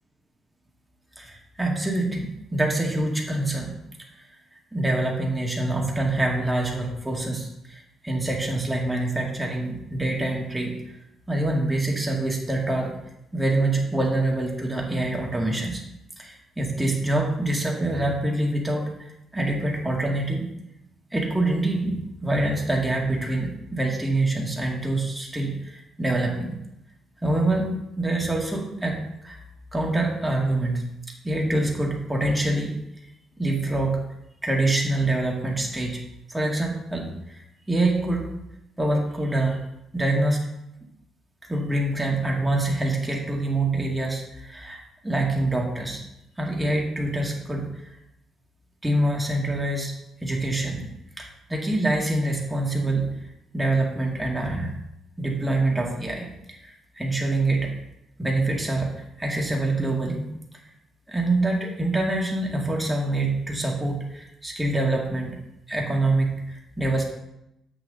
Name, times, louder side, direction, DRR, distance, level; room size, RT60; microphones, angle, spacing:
voice 1, 1.2-3.7 4.7-11.0 11.3-12.9 13.3-15.8 16.2-20.5 21.1-26.5 27.2-29.4 29.7-30.8 31.2-32.8 33.4-34.0 34.4-36.0 36.3-38.2 38.8-39.6 39.9-40.5 41.5-46.0 46.4-47.8 48.8-50.0 50.2-50.8 51.2-53.1 53.5-54.7 55.2-57.7 58.2-60.3 61.1-65.4 65.7-67.0, right 2 dB, 10° right, -1 dB, 2.0 m, -25 dB
8.0 x 6.2 x 3.9 m, 0.85 s
cardioid pair, 90°, 0 cm